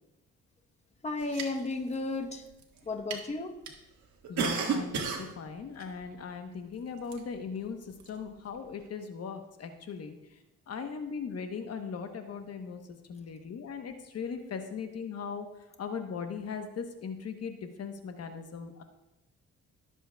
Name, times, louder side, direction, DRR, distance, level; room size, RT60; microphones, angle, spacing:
voice 1, 1.0-2.5 2.9-3.5, left 3 dB, 20° left, 4 dB, 1.0 m, -33 dB
sound 1, 1.2-1.9 2.5-2.8 3.1-3.2 3.7-3.8 4.2-5.3 5.8-5.9 7.1-7.2 7.9-8.1, right 5 dB, 70° right, 1.6 m, -32 dB
voice 2, 4.3-10.4 10.7-12.8 13.1-15.5 15.8-18.8, left 6 dB, 55° left, 6 dB, 1.0 m, -39 dB
18.5 x 7.5 x 2.3 m, 0.94 s
cardioid pair, 90°, 30 cm